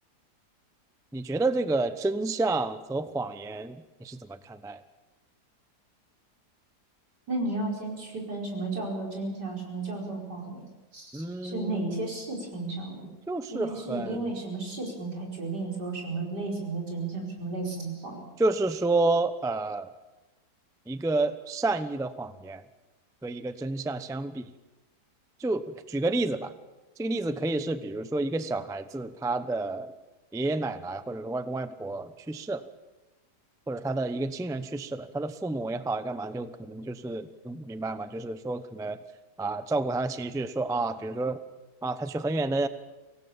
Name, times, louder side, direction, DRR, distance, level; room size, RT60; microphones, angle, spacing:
voice 1, 1.1-4.8 11.1-11.9 13.3-14.3 18.4-19.9 20.9-22.6 23.2-24.5 25.4-26.5 27.0-29.9 30.3-32.6 33.7-39.0 39.4-41.4 41.8-42.7, right 2 dB, 5° right, 12 dB, 0.4 m, -30 dB
voice 2, 7.3-10.7 10.9-13.1 13.5-18.2, right 2 dB, 85° right, 0 dB, 5.8 m, -33 dB
25.0 x 18.0 x 7.3 m, 1.1 s
omnidirectional pair, 1.8 m